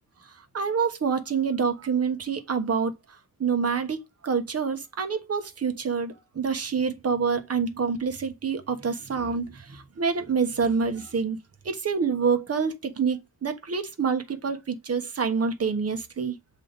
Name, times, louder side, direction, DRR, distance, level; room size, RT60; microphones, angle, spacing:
voice 1, 0.5-2.9 3.4-11.4 11.6-16.4, right 5 dB, 45° right, 1.2 m, -27 dB
7.3 x 3.6 x 4.0 m
cardioid pair, 90°, 36 cm